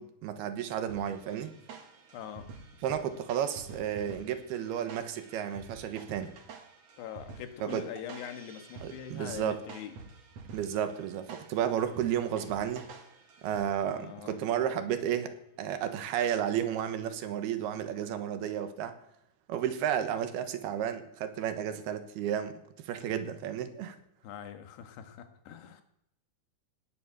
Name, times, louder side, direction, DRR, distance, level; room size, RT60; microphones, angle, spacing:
voice 1, 0.0-1.5 2.8-6.3 7.6-7.8 8.8-9.6 10.5-12.8 13.4-19.0 19.5-24.0, right 9 dB, 80° right, 10 dB, 3.2 m, -32 dB
sound 1, 0.9-14.1, right 4 dB, 50° right, 2.3 m, -49 dB
voice 2, 2.1-2.5 7.0-10.0 13.9-14.4 24.2-25.8, left 9 dB, 85° left, 8 dB, 3.5 m, -43 dB
18.0 x 9.8 x 8.0 m, 0.78 s
omnidirectional pair, 4.6 m